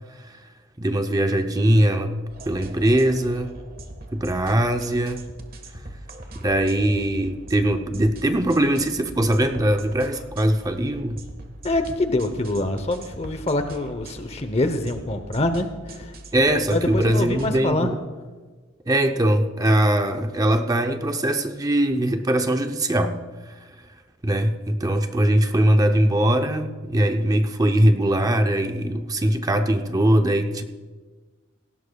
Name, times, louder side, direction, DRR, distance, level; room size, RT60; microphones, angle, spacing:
voice 1, 0.8-2.1 2.5-3.5 4.1-5.2 6.4-11.2 16.3-18.0 18.9-23.2 23.5-23.6 24.2-30.6, right 1 dB, 20° right, 6 dB, 0.6 m, -21 dB
sound 1, 2.3-17.6, right 1 dB, 45° right, 1.4 m, -41 dB
voice 2, 11.6-16.2 16.7-17.9, left 2 dB, 30° left, 9 dB, 0.8 m, -25 dB
18.0 x 16.5 x 2.3 m, 1.3 s
head